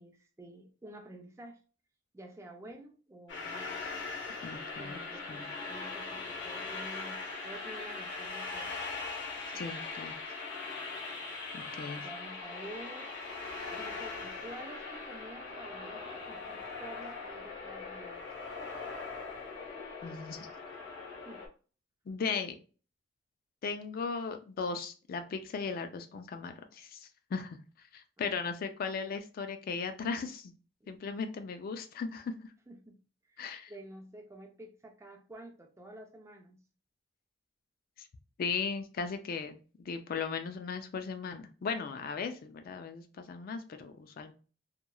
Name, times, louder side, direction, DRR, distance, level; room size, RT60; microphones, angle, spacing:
voice 1, 0.0-1.6 2.1-3.7 4.8-8.7 12.0-13.1 13.7-18.2 21.2-21.4 28.2-28.4 30.8-30.9 32.7-33.0 33.3-36.6, right 1 dB, 15° right, 3 dB, 0.4 m, -50 dB
sound 1, 3.3-21.5, left 4 dB, 70° left, 0.8 m, -41 dB
voice 2, 4.4-5.0 5.3-5.5 9.5-10.1 11.5-12.1 20.0-20.5 22.1-22.6 23.6-27.6 27.9-30.5 30.9-32.3 33.4-33.7 38.0-38.1 38.4-39.6 39.9-44.3, left 5 dB, 50° left, 8 dB, 0.3 m, -37 dB
2.9 x 2.3 x 2.2 m, 0.36 s
head